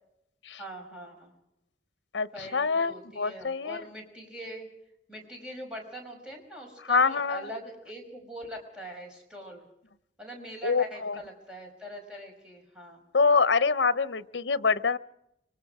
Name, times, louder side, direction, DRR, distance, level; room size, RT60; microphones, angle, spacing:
voice 1, 0.6-1.3 2.3-4.7 5.1-9.6 10.2-13.0, right 1 dB, 5° right, 0 dB, 5.5 m, -42 dB
voice 2, 2.1-3.8 6.9-7.4 10.6-11.2 13.1-15.0, left 4 dB, 80° left, 16 dB, 0.8 m, -25 dB
25.0 x 24.0 x 4.9 m, 0.80 s
head